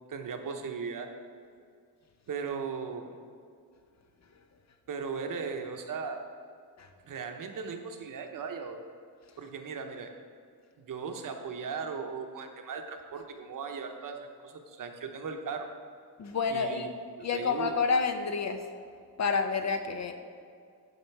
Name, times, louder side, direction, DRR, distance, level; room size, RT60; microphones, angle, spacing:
voice 1, 0.1-1.1 2.3-3.2 4.9-6.2 7.0-8.8 9.4-10.1 10.8-14.2 14.4-15.7 16.5-16.9 17.2-17.8, right 5 dB, 50° right, 5 dB, 0.9 m, -37 dB
voice 2, 16.2-16.9 17.2-18.6 19.2-20.1, left 5 dB, 45° left, 7 dB, 0.6 m, -29 dB
11.0 x 5.2 x 4.6 m, 2.2 s
cardioid pair, 140°, 41 cm